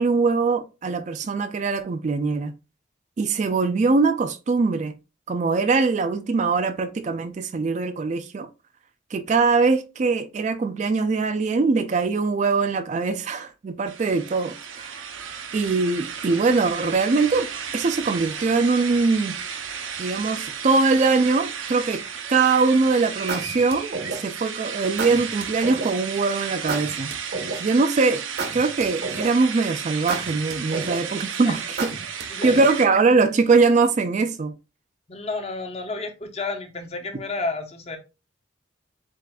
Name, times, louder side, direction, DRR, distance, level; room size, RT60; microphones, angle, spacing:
voice 1, 0.0-2.5 3.2-4.9 5.3-8.5 9.1-15.0 15.5-17.5 17.7-19.4 20.0-22.0 22.3-27.1 27.6-28.2 28.5-31.9 32.4-34.5, right 4 dB, 35° right, 0.3 m, -22 dB
sound 1, 13.9-32.9, right 7 dB, 90° right, 0.7 m, -34 dB
sound 2, 22.4-22.7 23.3-24.4 25.0-25.9 26.7-27.8 28.4-29.5 30.1-31.2 31.8-32.9, right 3 dB, 55° right, 0.8 m, -31 dB
voice 2, 32.3-32.7 35.1-38.0, left 3 dB, 30° left, 0.8 m, -31 dB
7.4 x 2.5 x 2.3 m
head